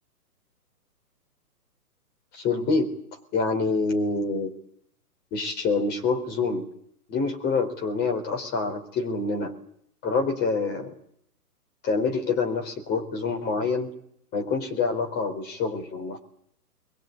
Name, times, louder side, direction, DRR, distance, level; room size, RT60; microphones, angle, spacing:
voice 1, 2.3-2.9 3.3-4.5 5.3-6.7 7.1-9.5 10.0-10.9 11.8-13.9 14.3-16.2, left 4 dB, 20° left, 4 dB, 4.1 m, -26 dB
23.5 x 22.0 x 8.5 m, 0.69 s
hypercardioid pair, 135°, 48 cm